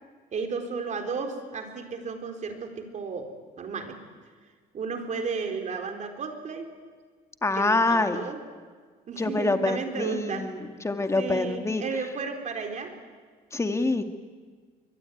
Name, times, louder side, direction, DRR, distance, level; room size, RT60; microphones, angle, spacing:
voice 1, 0.3-3.3 3.6-4.0 4.7-6.7 7.6-8.4 9.1-10.4 11.2-12.9, right 5 dB, 45° right, 5 dB, 4.2 m, -33 dB
voice 2, 7.4-8.2 9.2-11.8 13.5-14.0, left 2 dB, 15° left, 7 dB, 2.1 m, -26 dB
23.0 x 23.0 x 9.4 m, 1.5 s
cardioid pair, 110°, 17 cm